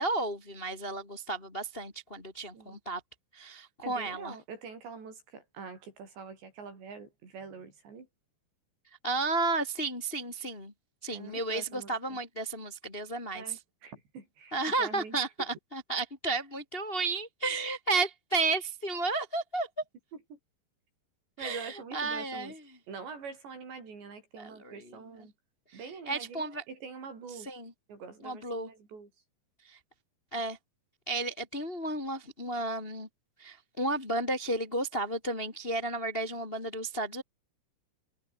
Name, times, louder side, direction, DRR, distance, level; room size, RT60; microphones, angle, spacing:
voice 1, 0.0-3.0 3.3-4.3 9.0-10.7 11.0-13.6 14.5-19.7 21.4-22.6 24.4-25.3 25.7-26.6 27.4-27.7 28.2-28.7 29.6-29.8 30.3-30.6 31.1-33.1 33.4-37.2, right 3 dB, 20° left, 1.8 m, -33 dB
voice 2, 3.8-8.1 11.1-12.2 13.3-15.2 20.3-20.4 21.4-22.5 22.9-25.3 25.7-27.5 27.9-29.1, right 5 dB, 80° right, 8.8 m, -45 dB
omnidirectional pair, 5.0 m